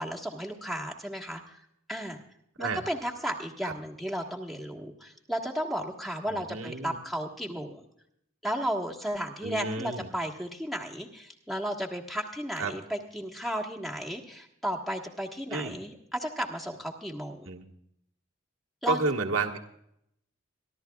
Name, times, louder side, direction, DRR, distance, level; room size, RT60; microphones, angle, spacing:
voice 1, 0.0-1.6 1.9-2.2 2.6-7.8 8.4-17.5 18.8-19.0, equal, ahead, -1 dB, 1.4 m, -34 dB
voice 2, 6.3-7.0 9.4-10.1 12.6-12.7 15.5-15.8 17.4-17.7 18.8-19.6, right 3 dB, 75° right, 2 dB, 1.5 m, -31 dB
26.0 x 12.5 x 2.3 m, 0.74 s
head